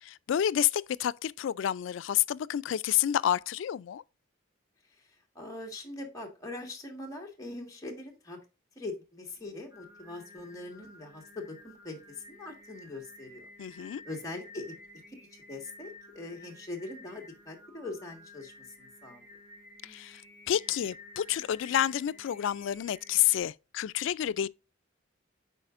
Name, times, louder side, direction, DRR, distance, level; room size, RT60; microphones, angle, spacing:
voice 1, 0.0-4.0 13.6-14.0 19.8-20.2 20.5-24.5, left 10 dB, 70° left, 0.3 m, -29 dB
voice 2, 4.9-8.4 8.7-13.5 14.0-14.7 15.5-19.2, left 2 dB, 15° left, 1.7 m, -42 dB
Singing, 9.4-23.4, left 1 dB, 15° right, 2.3 m, -53 dB
9.9 x 4.1 x 2.5 m
head